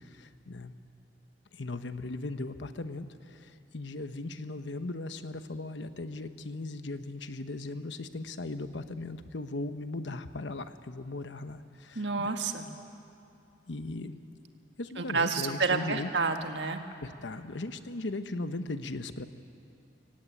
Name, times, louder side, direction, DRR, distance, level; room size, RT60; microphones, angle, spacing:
voice 1, 0.2-0.7 1.5-12.3 13.7-14.2 14.8-16.1 17.0-19.3, left 2 dB, 85° left, 10 dB, 1.0 m, -38 dB
voice 2, 11.9-12.7 15.0-16.8, right 4 dB, 75° right, 6 dB, 1.6 m, -29 dB
24.0 x 16.5 x 9.0 m, 2.6 s
head